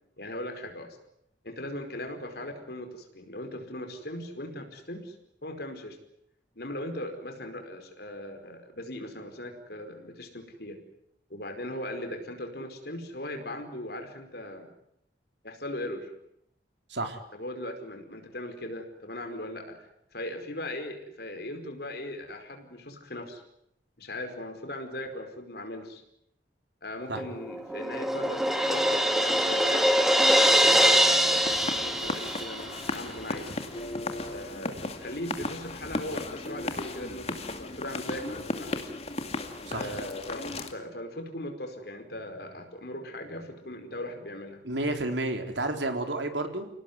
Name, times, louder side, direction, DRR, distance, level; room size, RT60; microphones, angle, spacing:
voice 1, 0.2-1.0 1.4-5.2 5.4-6.0 6.6-10.8 11.3-14.7 15.4-16.1 17.3-23.4 24.0-26.0 26.8-29.9 30.5-33.6 34.3-38.9 39.7-44.6, left 1 dB, 60° left, 5 dB, 5.0 m, -39 dB
Crash cymbal, 27.2-32.9, equal, ahead, 2.3 m, -23 dB
sound 1, 31.2-40.7, left 2 dB, 35° left, 2.4 m, -36 dB
voice 2, 44.6-46.7, right 2 dB, 85° right, 6 dB, 4.0 m, -31 dB
29.0 x 18.5 x 9.6 m, 0.76 s
head